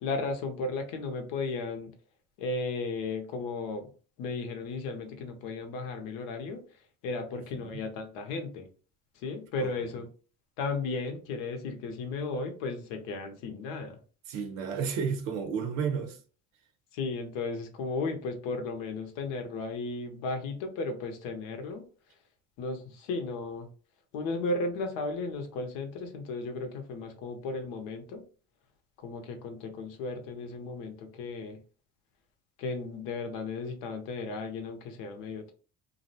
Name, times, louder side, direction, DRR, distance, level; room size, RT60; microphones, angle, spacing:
voice 1, 0.0-1.9 2.4-3.9 4.2-6.6 7.0-8.7 9.1-10.1 10.6-14.0 16.9-21.8 22.6-23.7 24.1-28.2 29.0-31.6 32.6-35.5, left 3 dB, 80° left, 0.7 m, -35 dB
voice 2, 7.3-7.8 9.6-10.0 14.3-16.2, right 6 dB, 80° right, 0.7 m, -33 dB
2.5 x 2.0 x 2.6 m
supercardioid pair, 85°, 33 cm